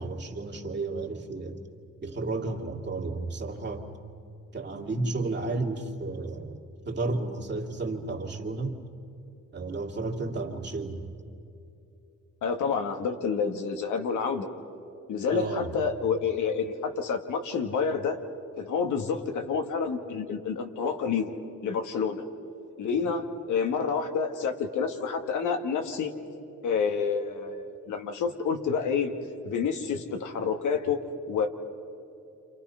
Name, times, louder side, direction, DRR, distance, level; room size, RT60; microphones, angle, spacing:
voice 1, 0.0-1.6 2.0-3.8 4.5-6.6 6.9-8.8 9.5-11.1 15.3-15.8, right 3 dB, 35° right, 1 dB, 2.6 m, -32 dB
voice 2, 12.4-14.5 15.1-18.2 18.6-21.4 21.6-22.2 22.8-26.1 26.6-29.1 29.4-31.0 31.3-31.5, left 6 dB, 75° left, 5 dB, 1.8 m, -28 dB
29.0 x 27.5 x 5.7 m, 2.8 s
cardioid pair, 90°, 30 cm